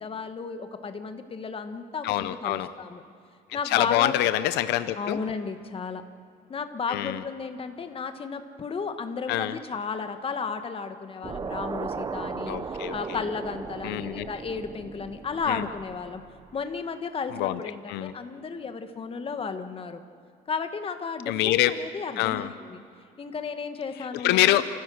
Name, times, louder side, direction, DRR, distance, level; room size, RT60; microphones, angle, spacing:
voice 1, 0.0-3.0 3.5-4.2 5.0-6.0 6.5-16.2 16.5-20.0 20.5-22.8 23.2-24.6, left 5 dB, 35° left, 8 dB, 1.5 m, -33 dB
voice 2, 2.0-2.7 3.6-5.2 6.9-7.2 9.3-9.6 12.5-12.9 13.8-14.3 15.5-15.7 17.4-17.6 17.9-18.1 21.3-21.8 22.2-22.5 24.1-24.6, left 15 dB, 90° left, 13 dB, 0.7 m, -25 dB
sound 1, 11.2-16.5, right 5 dB, 25° right, 0.6 m, -36 dB
29.5 x 15.5 x 6.3 m, 2.5 s
cardioid pair, 110°, 17 cm